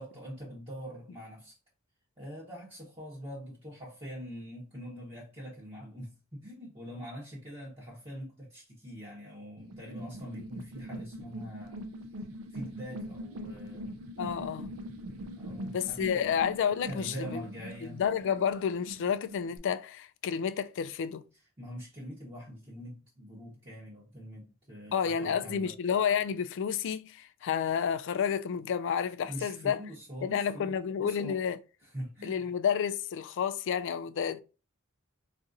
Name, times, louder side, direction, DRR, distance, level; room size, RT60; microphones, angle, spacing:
voice 1, 0.0-1.6 2.2-11.9 12.5-13.9 15.4-16.3 16.9-18.0 21.6-25.7 29.3-31.4 31.8-32.5, equal, 25° right, 0.9 m, -44 dB
sound 1, 9.6-19.6, equal, 80° right, 0.5 m, -42 dB
voice 2, 14.2-14.8 15.7-17.4 17.9-21.3 24.9-29.8 30.2-31.6 32.2-34.4, left 7 dB, 60° left, 0.3 m, -30 dB
4.0 x 2.5 x 2.5 m
head